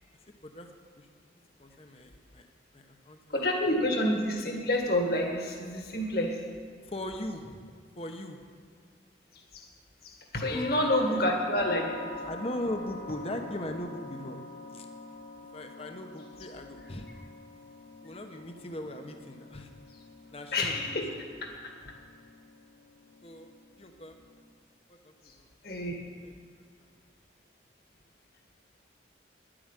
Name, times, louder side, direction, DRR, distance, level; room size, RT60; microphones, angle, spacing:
voice 1, 1.6-2.5 2.7-3.4 6.8-7.6 8.0-8.4 10.5-11.2 12.2-14.4 14.7-14.9 15.5-17.1 18.0-19.7 20.3-21.2 23.2-23.5 23.8-24.2 24.9-25.5 26.2-26.4 26.8-26.9, left 1 dB, 30° left, 4 dB, 1.0 m, -39 dB
voice 2, 3.3-6.4 10.0-11.9 20.5-21.1 21.4-21.9 25.6-26.0, left 1 dB, 55° left, 1 dB, 1.9 m, -28 dB
sound 1, 10.5-24.4, left 3 dB, 90° left, 2.0 m, -46 dB
11.0 x 8.8 x 9.1 m, 2.1 s
head